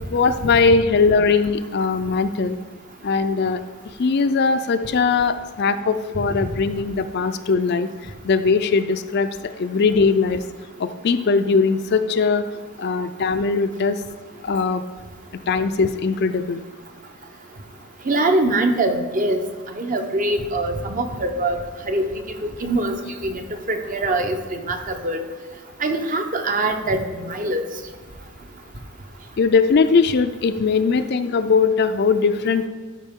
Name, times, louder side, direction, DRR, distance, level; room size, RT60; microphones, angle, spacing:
voice 1, 0.1-2.6 3.0-3.6 4.0-7.9 8.2-9.3 9.6-10.4 10.8-12.4 12.8-14.0 14.4-14.8 15.5-16.6 29.4-32.7, left 4 dB, 50° left, 10 dB, 0.4 m, -20 dB
voice 2, 18.1-19.4 19.7-21.6 21.9-22.1 22.4-23.0 23.2-23.4 23.7-25.2 25.8-27.6, right 2 dB, 40° right, 5 dB, 0.7 m, -23 dB
12.5 x 4.9 x 3.6 m, 1.4 s
head